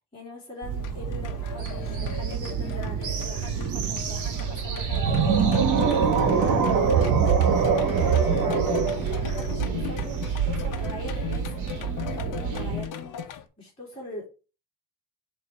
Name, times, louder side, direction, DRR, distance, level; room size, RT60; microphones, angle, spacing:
voice 1, 0.1-6.4 6.7-14.3, left 1 dB, 15° left, -5 dB, 2.8 m, -42 dB
sound 1, 0.6-12.9, right 6 dB, 55° right, 1.5 m, -31 dB
sound 2, 0.8-13.4, left 9 dB, 60° left, 1.0 m, -37 dB
sound 3, 4.8-10.1, right 6 dB, 90° right, 1.4 m, -23 dB
7.7 x 3.2 x 5.9 m, 0.33 s
cardioid pair, 155°, 36 cm